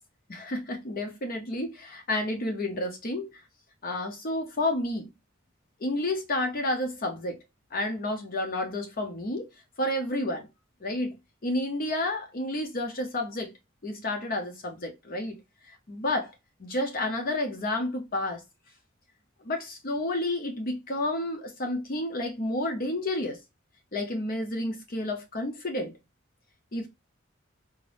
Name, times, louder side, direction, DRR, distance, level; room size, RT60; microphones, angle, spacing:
voice 1, 0.3-3.4 3.8-5.1 5.8-7.4 7.7-9.5 9.8-10.5 10.8-11.1 11.4-13.5 13.8-15.4 15.6-16.3 16.6-18.4 19.4-23.4 23.9-25.9 26.7-26.9, left 1 dB, 45° left, 0.7 m, -30 dB
5.0 x 2.6 x 3.3 m
head